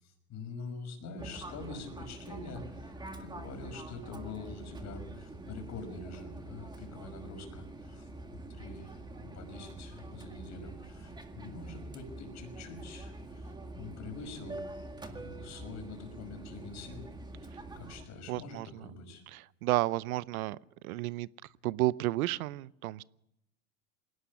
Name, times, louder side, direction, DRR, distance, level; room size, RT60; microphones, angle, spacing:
voice 1, 0.0-17.1 17.5-19.2, left 3 dB, 40° left, 6 dB, 5.8 m, -45 dB
Fixed-wing aircraft airplane, 1.2-18.1, right 2 dB, 10° right, 1.9 m, -45 dB
voice 2, 18.3-18.9 19.3-20.6 20.8-21.3 21.6-23.0, right 17 dB, 85° right, 21 dB, 0.7 m, -32 dB
21.0 x 17.5 x 7.0 m, 0.81 s
supercardioid pair, 125°, 42 cm